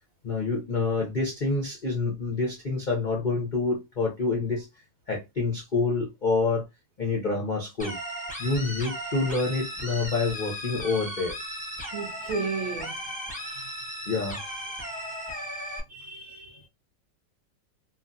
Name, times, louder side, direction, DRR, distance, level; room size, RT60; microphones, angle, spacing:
voice 1, 0.2-4.7 5.1-6.6 7.0-8.0 8.4-11.3 14.1-14.4, left 3 dB, 60° left, 0.4 m, -27 dB
sound 1, 7.8-15.8, equal, 10° left, 0.4 m, -36 dB
voice 2, 11.9-12.9 15.9-16.7, right 4 dB, 70° right, 0.8 m, -34 dB
2.9 x 2.5 x 2.6 m
omnidirectional pair, 2.0 m